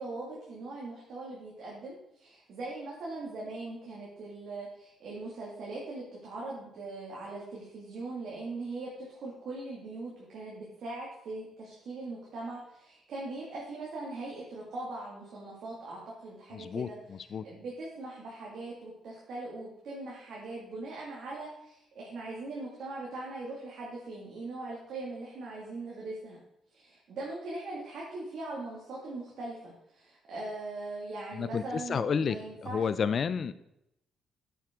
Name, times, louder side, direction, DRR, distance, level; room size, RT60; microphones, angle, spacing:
voice 1, 0.0-17.0 17.4-26.4 26.7-32.8, right 2 dB, 70° right, -4 dB, 2.4 m, -40 dB
voice 2, 16.5-17.4 31.3-33.5, left 6 dB, 50° left, 14 dB, 0.6 m, -31 dB
9.4 x 7.1 x 3.8 m, 0.81 s
cardioid pair, 90°, 0 cm